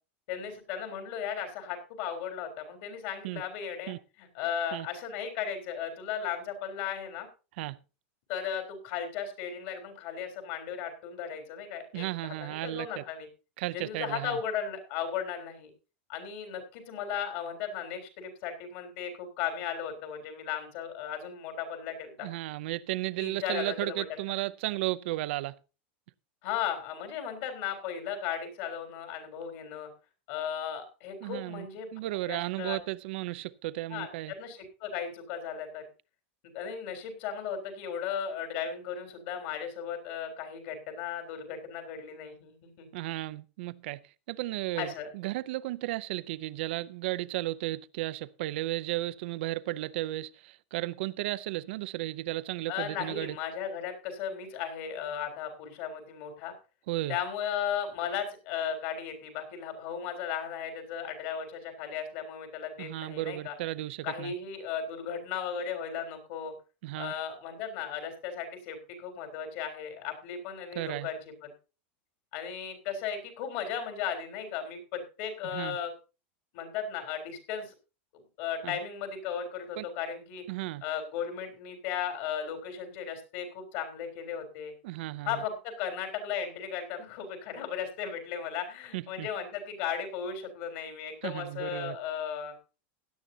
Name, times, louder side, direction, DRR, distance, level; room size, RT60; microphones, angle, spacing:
voice 1, 0.3-7.3 8.3-13.3 13.7-15.7 16.1-22.3 23.2-24.0 26.4-29.9 30.3-31.9 32.3-32.8 33.9-35.9 36.5-42.9 44.8-45.1 52.7-56.5 57.1-63.5 64.0-66.5 67.0-71.5 72.3-75.9 76.5-77.7 78.4-80.4 80.8-84.7 85.3-92.5, left 8 dB, 50° left, 3.7 m, -36 dB
voice 2, 11.9-13.0 13.6-14.4 22.2-25.6 31.2-31.7 31.9-34.3 42.9-44.0 44.3-53.4 56.9-57.2 62.8-64.3 66.8-67.1 70.7-71.1 75.5-75.8 78.6-78.8 79.8-79.9 80.5-80.8 84.8-85.4 88.9-89.3 91.2-92.0, right 17 dB, 60° right, 0.6 m, -34 dB
16.5 x 10.5 x 2.8 m
supercardioid pair, 165°, 7 cm